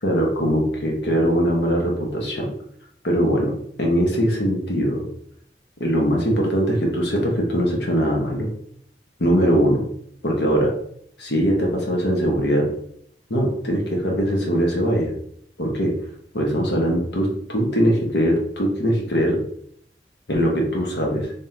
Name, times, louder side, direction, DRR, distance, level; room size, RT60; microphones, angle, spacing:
voice 1, 0.0-2.5 3.0-5.0 5.8-8.5 9.2-9.8 10.2-10.7 11.2-12.7 13.3-15.1 15.6-15.9 16.3-19.4 20.3-21.3, equal, 70° left, 0 dB, 1.1 m, -21 dB
3.6 x 3.5 x 2.8 m, 0.66 s
head